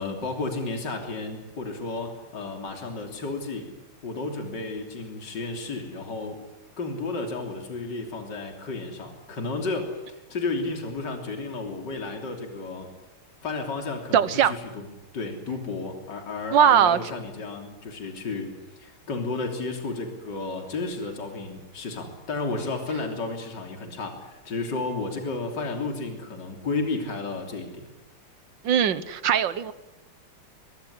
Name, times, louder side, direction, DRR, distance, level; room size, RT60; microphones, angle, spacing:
voice 1, 0.0-3.7 4.0-6.4 6.8-12.9 13.4-14.9 15.1-18.5 18.8-27.9, left 3 dB, 50° left, 3 dB, 3.8 m, -32 dB
voice 2, 14.1-14.5 16.5-17.0 28.6-29.7, right 9 dB, 60° right, 15 dB, 1.7 m, -20 dB
23.0 x 22.5 x 9.9 m, 0.99 s
omnidirectional pair, 2.4 m